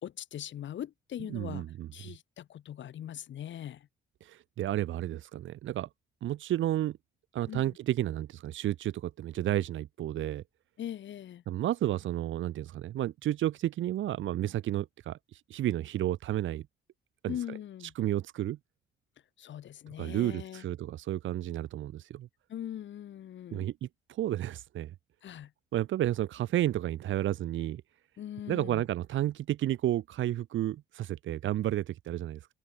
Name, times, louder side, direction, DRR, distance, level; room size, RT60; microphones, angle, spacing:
voice 1, 0.0-1.7 1.9-3.9 7.5-7.8 10.8-11.4 17.3-17.9 19.4-20.6 22.5-23.7 25.2-25.5 28.2-28.8, left 11 dB, 70° left, 4.0 m, -41 dB
voice 2, 1.3-1.9 4.2-5.9 6.2-7.0 7.3-10.4 11.5-16.7 17.2-17.4 18.0-18.6 20.0-22.3 23.5-24.9 25.7-27.8 28.5-32.5, right 13 dB, 75° right, 2.2 m, -31 dB
cardioid pair, 90°, 20 cm